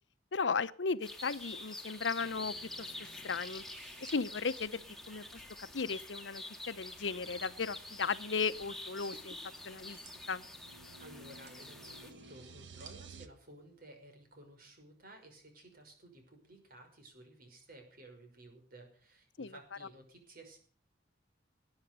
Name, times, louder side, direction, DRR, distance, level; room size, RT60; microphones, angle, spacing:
voice 1, 0.3-3.6 4.1-4.8 5.1-9.4 9.6-10.0 10.3-10.4 19.4-19.9, left 5 dB, 90° left, 14 dB, 0.8 m, -36 dB
sound 1, 1.0-12.1, left 2 dB, ahead, 2.1 m, -47 dB
sound 2, 1.2-14.1, right 4 dB, 70° right, 3.3 m, -62 dB
sound 3, 2.2-13.3, right 3 dB, 85° right, 1.3 m, -57 dB
voice 2, 11.0-20.6, right 1 dB, 55° right, 4 dB, 5.8 m, -55 dB
20.0 x 9.8 x 6.8 m, 0.42 s
head